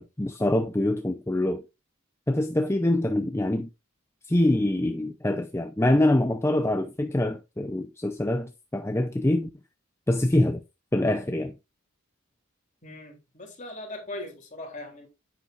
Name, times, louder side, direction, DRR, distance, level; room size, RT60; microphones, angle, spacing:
voice 1, 0.0-1.6 2.3-3.7 4.3-9.5 10.1-10.6 10.9-11.5, left 1 dB, 10° left, 0.6 m, -25 dB
voice 2, 12.8-15.1, left 1 dB, 35° left, 3.6 m, -39 dB
10.0 x 8.6 x 2.5 m
head